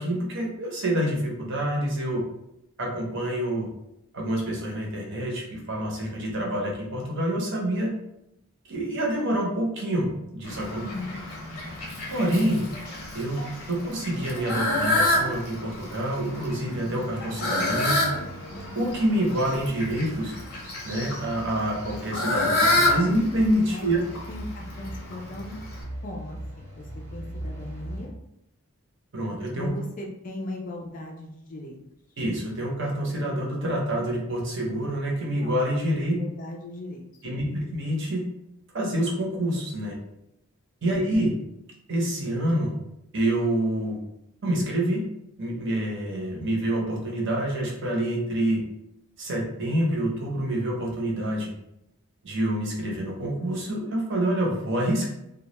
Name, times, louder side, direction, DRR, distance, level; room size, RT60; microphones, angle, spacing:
voice 1, 0.0-2.2 2.8-3.7 4.1-7.9 8.7-10.8 12.1-12.6 13.1-18.0 18.7-20.3 20.8-24.0 29.1-29.7 32.2-36.1 37.2-38.3 38.7-40.0 40.8-41.3 41.9-42.7 43.1-44.0 44.4-45.0 45.4-48.6 49.2-51.5 52.2-55.1, right 1 dB, 55° right, -2 dB, 0.6 m, -27 dB
Fowl, 10.4-25.8, left 1 dB, 85° left, 0.7 m, -29 dB
voice 2, 10.8-11.2 23.7-23.9 24.3-25.6 26.0-26.9 27.1-28.1 29.6-31.8 35.4-35.6 35.9-37.3 40.8-40.9, left 2 dB, 35° left, 1 dB, 0.3 m, -38 dB
sound 1, 18.5-28.1, right 1 dB, 85° right, 0.8 m, -41 dB
2.2 x 2.0 x 2.8 m, 0.83 s
head